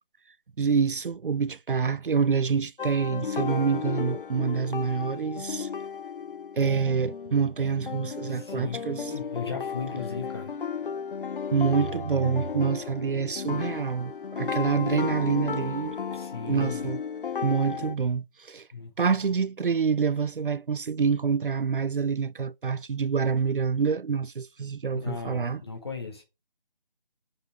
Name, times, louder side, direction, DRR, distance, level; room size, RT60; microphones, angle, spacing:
voice 1, 0.6-5.7 6.6-9.1 11.5-16.0 16.4-17.0 17.4-18.7 19.0-25.6, right 6 dB, 65° right, 0.5 m, -26 dB
sound 1, 2.8-17.9, left 6 dB, 65° left, 0.4 m, -34 dB
voice 2, 8.3-10.5 16.1-16.9 18.7-18.9 24.9-26.2, left 5 dB, 25° left, 1.3 m, -37 dB
5.0 x 4.4 x 4.8 m
figure-of-eight pair, 165°, 29 cm